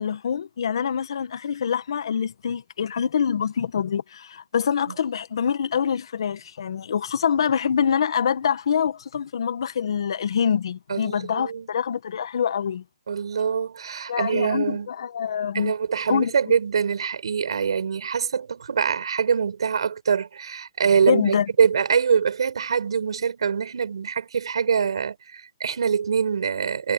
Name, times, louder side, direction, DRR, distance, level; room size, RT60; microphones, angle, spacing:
voice 1, 0.0-12.8 14.1-15.7 16.1-16.3 21.1-21.5, left 7 dB, 60° left, 1.5 m, -25 dB
voice 2, 10.9-11.7 13.1-14.9 15.5-26.9, right 6 dB, 70° right, 6.4 m, -24 dB
hypercardioid pair, 165°, 3 cm